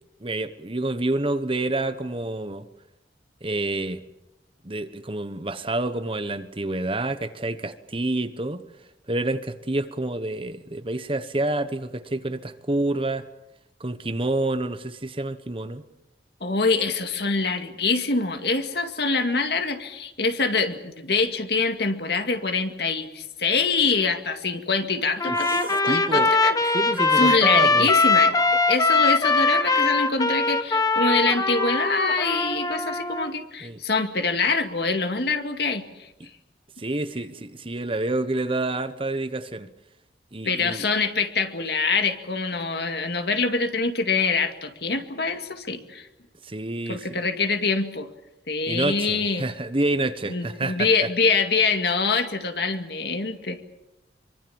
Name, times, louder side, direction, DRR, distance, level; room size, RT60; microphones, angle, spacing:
voice 1, 0.2-2.7 3.4-4.0 4.6-8.6 9.1-13.3 13.8-15.8 25.2-26.3 26.7-27.9 33.6-33.8 36.2-36.3 36.8-39.7 40.3-40.9 46.4-47.2 48.7-51.1, right 2 dB, 30° right, 1.2 m, -28 dB
voice 2, 16.4-26.6 27.2-36.1 40.5-46.1 46.9-48.1 48.5-49.4 50.3-53.6, left 4 dB, 60° left, 2.2 m, -25 dB
Trumpet, 25.2-33.3, left 3 dB, 20° left, 1.5 m, -21 dB
sound 1, 25.3-26.5 28.3-29.5 31.5-32.8, right 1 dB, 50° right, 3.7 m, -36 dB
25.0 x 24.5 x 7.2 m
head